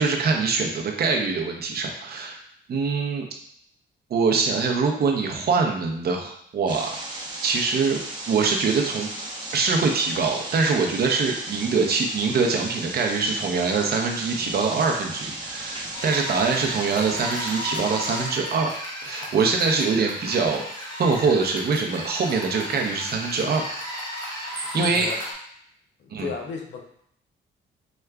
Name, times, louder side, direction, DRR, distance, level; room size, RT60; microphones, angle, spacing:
voice 1, 0.0-2.4 2.7-3.3 4.1-6.9 7.4-8.0 8.3-9.1 9.5-18.7 19.0-20.6 21.0-23.6 24.4-25.1 26.1-26.3, right 4 dB, 55° right, 2 dB, 0.6 m, -23 dB
sound 1, 6.7-18.3, right 2 dB, 25° right, 0.8 m, -35 dB
sound 2, 15.9-25.3, equal, 20° left, 1.3 m, -34 dB
voice 2, 24.7-25.2 26.0-26.8, left 5 dB, 65° left, 2 dB, 0.6 m, -34 dB
4.7 x 2.2 x 2.2 m, 0.70 s
cardioid pair, 90°, 20 cm